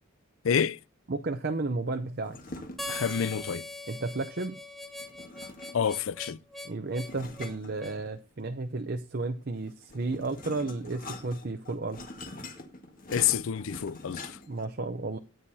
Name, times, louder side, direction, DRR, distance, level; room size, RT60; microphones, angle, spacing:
voice 1, 0.4-0.8 2.9-3.7 5.7-6.4 13.1-14.4, left 8 dB, 75° left, 0.5 m, -28 dB
voice 2, 1.1-2.4 3.9-4.6 6.6-12.1 14.5-15.2, right 3 dB, 50° right, 0.7 m, -33 dB
sound 1, 2.2-3.6 5.0-6.0 7.0-8.4 9.6-14.6, left 2 dB, 40° left, 1.7 m, -45 dB
Harmonica, 2.8-8.0, left 1 dB, ahead, 1.0 m, -41 dB
14.0 x 9.1 x 2.8 m
head